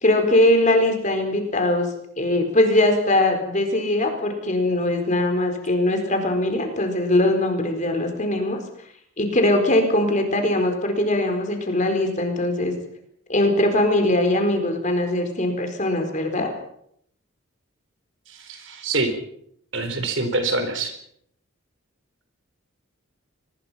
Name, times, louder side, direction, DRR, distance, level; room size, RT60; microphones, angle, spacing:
voice 1, 0.0-1.9 2.2-8.6 9.2-12.7 13.3-16.5, left 1 dB, 35° left, 5 dB, 4.5 m, -21 dB
voice 2, 18.3-19.1 19.7-20.9, right 3 dB, 60° right, 8 dB, 4.2 m, -25 dB
25.5 x 20.5 x 5.8 m, 0.70 s
head